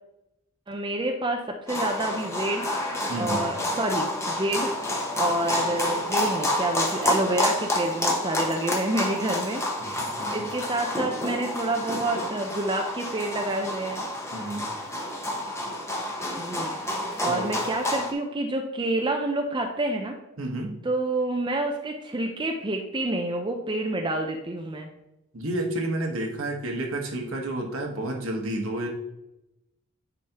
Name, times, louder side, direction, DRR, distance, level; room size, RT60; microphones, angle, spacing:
voice 1, 0.7-2.7 3.2-4.7 5.2-9.6 10.3-14.1 16.4-16.8 17.2-20.2 20.8-24.9, right 2 dB, 20° right, 3 dB, 0.5 m, -28 dB
sound 1, 1.7-18.1, left 1 dB, 15° left, 0.9 m, -29 dB
voice 2, 3.1-3.5 9.8-10.5 14.3-14.7 17.3-17.5 20.4-20.8 25.3-28.9, right 1 dB, 70° right, 1 dB, 1.3 m, -31 dB
9.4 x 5.1 x 2.9 m, 0.90 s
head